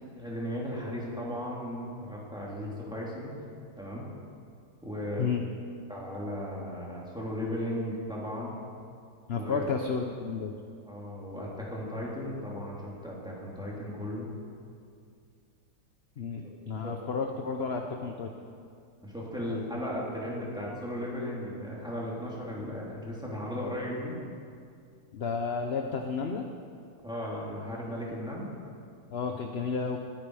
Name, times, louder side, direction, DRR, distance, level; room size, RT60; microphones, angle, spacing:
voice 1, 0.1-3.3 3.8-4.1 4.8-5.3 5.9-8.5 9.3-9.7 10.9-14.3 16.4-16.5 16.8-17.0 19.0-24.2 27.0-28.5, equal, ahead, -5 dB, 3.2 m, -36 dB
voice 2, 9.3-10.5 16.2-18.3 19.5-19.6 25.1-26.4 29.1-30.0, left 5 dB, 50° left, 4 dB, 0.8 m, -32 dB
21.0 x 10.5 x 4.9 m, 2.3 s
omnidirectional pair, 1.8 m